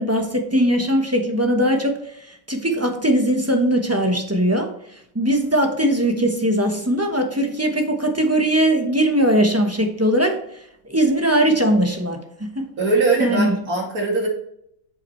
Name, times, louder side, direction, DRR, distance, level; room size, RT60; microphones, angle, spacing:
voice 1, 0.0-10.4 10.8-12.2 12.5-12.7 13.2-13.6, right 1 dB, 10° right, 3 dB, 0.7 m, -20 dB
voice 2, 12.8-14.3, right 3 dB, 50° right, -1 dB, 2.9 m, -21 dB
8.5 x 7.3 x 3.2 m, 0.73 s
omnidirectional pair, 2.0 m